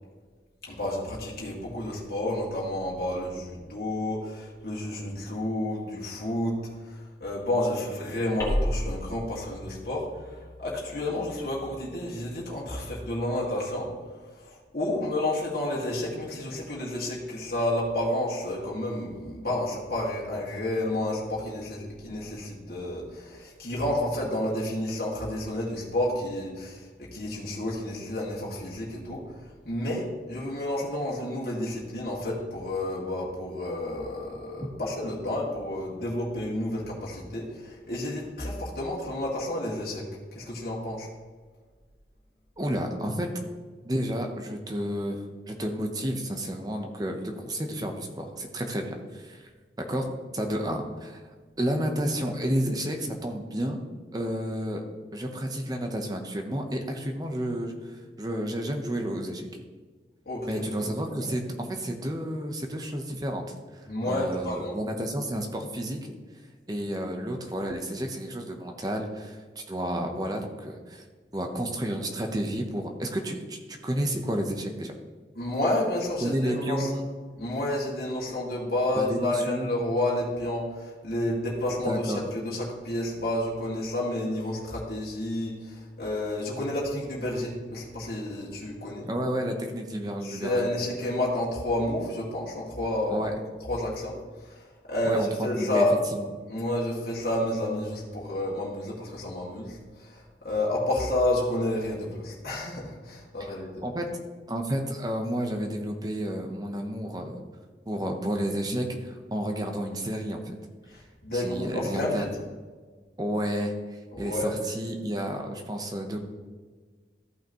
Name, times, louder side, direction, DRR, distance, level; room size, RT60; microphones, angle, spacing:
voice 1, 0.7-6.6 6.9-13.9 14.4-29.2 29.7-40.1 40.3-41.1 60.3-60.6 63.9-64.8 75.4-76.9 77.4-89.1 90.2-93.3 93.7-94.2 94.5-94.6 94.9-96.0 96.5-103.7 110.9-112.3 114.1-114.6, left 1 dB, 55° left, -5 dB, 1.9 m, -30 dB
sound 1, 8.4-13.2, equal, 15° left, 1.6 m, -35 dB
voice 2, 42.6-43.3 43.8-49.5 49.8-50.1 50.3-51.2 51.6-53.8 54.1-54.8 55.1-59.6 60.5-66.0 66.7-71.0 71.3-74.9 76.2-77.1 78.9-79.7 81.8-82.2 89.0-90.7 93.1-93.4 95.0-95.8 96.1-96.3 103.4-103.5 103.8-104.1 104.5-107.3 107.9-110.6 111.3-112.3 113.2-116.2, equal, 20° right, 3 dB, 0.8 m, -31 dB
14.0 x 5.8 x 3.0 m, 1.5 s
head